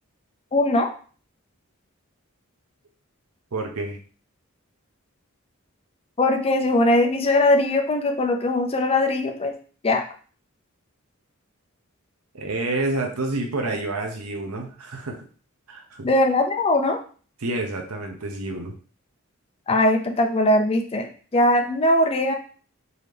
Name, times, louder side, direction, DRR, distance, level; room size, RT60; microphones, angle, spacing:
voice 1, 0.5-0.9 6.2-9.6 9.8-10.0 16.0-17.0 19.7-22.3, left 1 dB, 25° left, 4 dB, 0.4 m, -20 dB
voice 2, 3.5-4.0 12.3-15.2 15.7-16.1 17.4-18.7, right 2 dB, 80° right, 3 dB, 0.8 m, -28 dB
4.0 x 2.8 x 3.3 m, 0.41 s
head